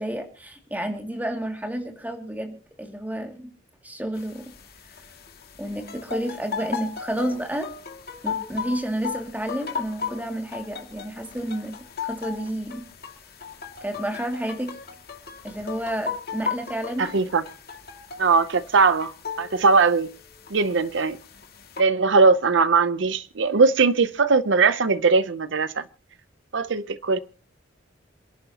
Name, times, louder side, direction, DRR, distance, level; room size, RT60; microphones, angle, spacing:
voice 1, 0.0-3.5 3.8-4.5 5.6-7.7 8.2-12.9 13.8-14.7 15.4-17.2, right 1 dB, 10° right, 2.4 m, -30 dB
sound 1, 4.1-21.8, left 6 dB, 50° left, 2.3 m, -37 dB
voice 2, 17.0-17.4 18.2-19.1 19.4-20.1 20.5-21.2 21.8-25.8 26.5-27.2, right 4 dB, 65° right, 0.6 m, -20 dB
28.0 x 11.0 x 2.9 m
head